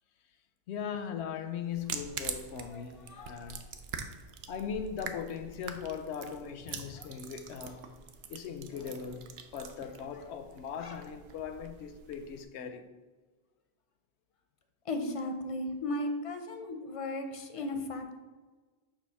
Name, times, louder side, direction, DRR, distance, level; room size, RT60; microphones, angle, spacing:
voice 1, 0.7-3.6 4.5-7.9 8.3-12.9, left 7 dB, 90° left, 0.9 m, -39 dB
sound 1, 1.7-12.4, right 7 dB, 75° right, 0.8 m, -45 dB
voice 2, 2.7-3.5 6.7-7.1 10.8-11.0 14.9-18.2, left 1 dB, 45° left, 0.5 m, -36 dB
6.9 x 2.6 x 5.6 m
omnidirectional pair, 1.1 m